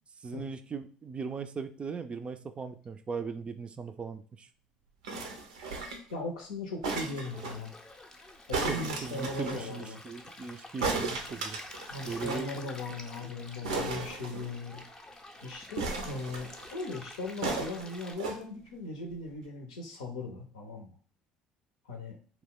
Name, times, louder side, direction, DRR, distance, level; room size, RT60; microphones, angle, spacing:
voice 1, 0.2-4.5 8.7-11.6 12.0-12.5, right 5 dB, 30° right, 9 dB, 0.3 m, -38 dB
sound 1, 5.0-6.1 6.8-7.6 8.5-9.6 10.8-12.5 12.8-12.9 13.1-13.2 13.6-14.8 15.8-16.7 17.4-18.4 19.1-19.2, right 3 dB, 85° right, 0.5 m, -35 dB
voice 2, 6.1-7.7 8.5-10.0 11.9-14.8 15.4-20.9 21.9-22.2, left 2 dB, 85° left, 2 dB, 0.7 m, -38 dB
Stream, 7.2-18.1, left 2 dB, 20° left, 0.5 m, -49 dB
2.3 x 2.1 x 3.7 m, 0.42 s
hypercardioid pair, 65°, 3 cm